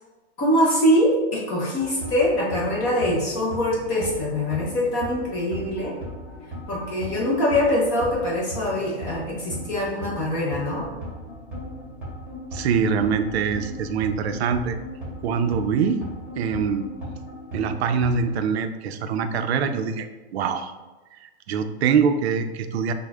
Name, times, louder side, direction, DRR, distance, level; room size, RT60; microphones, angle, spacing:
voice 1, 0.4-5.9 6.7-10.9, left 1 dB, 15° left, -4 dB, 0.3 m, -23 dB
sound 1, 1.8-18.4, equal, 5° right, 1.2 m, -37 dB
voice 2, 12.5-14.8 15.2-16.0 16.4-16.9 17.5-20.1 20.3-20.7 21.1-22.9, right 6 dB, 70° right, 9 dB, 0.5 m, -24 dB
6.1 x 2.1 x 2.3 m, 1.2 s
hypercardioid pair, 145°, 34 cm